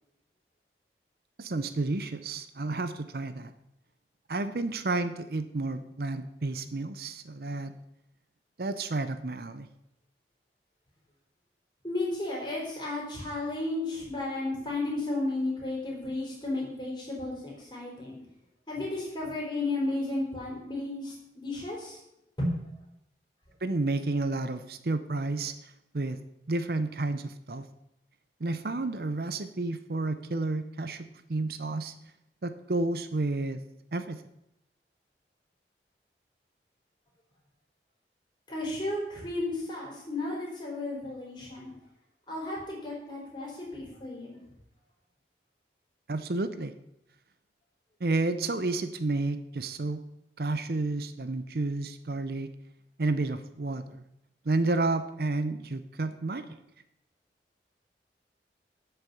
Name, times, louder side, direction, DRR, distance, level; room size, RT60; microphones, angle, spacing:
voice 1, 1.4-3.5 4.3-7.7 8.6-9.7 23.6-26.2 26.5-27.6 28.4-31.9 32.4-33.6 33.9-34.2 46.1-46.7 48.0-50.0 50.4-52.5 53.0-54.0 54.4-56.5, right 2 dB, 60° right, 11 dB, 0.7 m, -31 dB
voice 2, 11.8-18.2 18.7-22.0 22.4-22.5 38.5-41.7 42.3-44.4, left 2 dB, 25° left, -4 dB, 4.3 m, -33 dB
8.4 x 6.8 x 8.4 m, 0.83 s
head